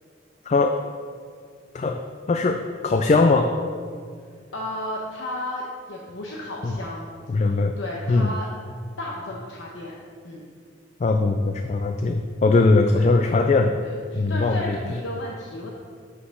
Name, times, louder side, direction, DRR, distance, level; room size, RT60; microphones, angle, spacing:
voice 1, 0.5-0.8 1.7-2.0 2.3-3.5 6.6-6.7 7.3-7.7 8.1-8.3 11.0-13.7 14.1-14.8, left 3 dB, 35° left, 6 dB, 0.3 m, -20 dB
voice 2, 4.5-7.1 7.3-7.4 7.8-8.5 9.0-10.0 10.2-10.5 12.9-13.1 13.8-15.7, left 1 dB, 75° left, -3 dB, 0.9 m, -33 dB
5.9 x 5.9 x 6.3 m, 2.1 s
head